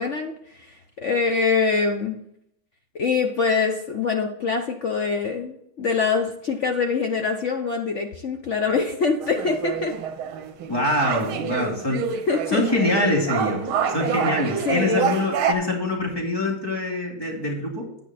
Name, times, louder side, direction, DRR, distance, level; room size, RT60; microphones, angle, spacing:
voice 1, 0.0-2.2 2.9-9.9 12.3-12.6 14.6-15.1, left 5 dB, 60° left, 4 dB, 0.7 m, -24 dB
sound 1, 9.2-15.5, right 7 dB, 85° right, 1.7 m, -27 dB
voice 2, 10.7-12.2 12.5-17.9, left 1 dB, 10° left, -2 dB, 2.2 m, -25 dB
9.4 x 8.9 x 4.2 m, 0.75 s
omnidirectional pair, 2.2 m